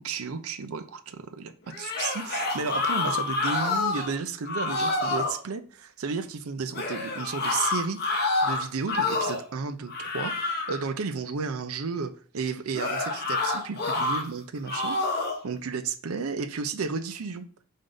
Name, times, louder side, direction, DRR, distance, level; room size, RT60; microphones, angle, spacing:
voice 1, 0.0-1.5 1.8-15.0 15.4-17.4, right 5 dB, 85° right, 0.6 m, -33 dB
sound 1, 1.7-4.1 4.5-5.4 6.7-9.5 9.9-10.9 12.7-14.2 14.7-15.4, left 3 dB, 45° left, 1.0 m, -28 dB
3.7 x 3.6 x 3.8 m
head